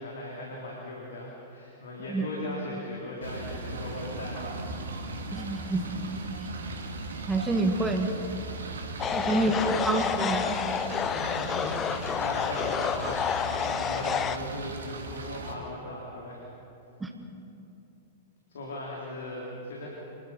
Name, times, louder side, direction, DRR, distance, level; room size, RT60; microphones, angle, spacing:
voice 1, 0.0-4.8 6.6-6.7 8.8-9.6 11.0-16.5 18.5-19.9, left 1 dB, 60° left, -3 dB, 3.7 m, -39 dB
sound 1, 3.2-15.5, right 2 dB, 65° right, 2.5 m, -38 dB
voice 2, 5.3-5.9 6.4-6.5 7.3-8.1 9.1-10.6 17.0-17.1, right 2 dB, 10° right, 5 dB, 2.1 m, -27 dB
sound 2, 9.0-14.4, left 7 dB, 20° left, 0.8 m, -29 dB
26.5 x 21.5 x 5.8 m, 2.8 s
figure-of-eight pair, 100°, 0 cm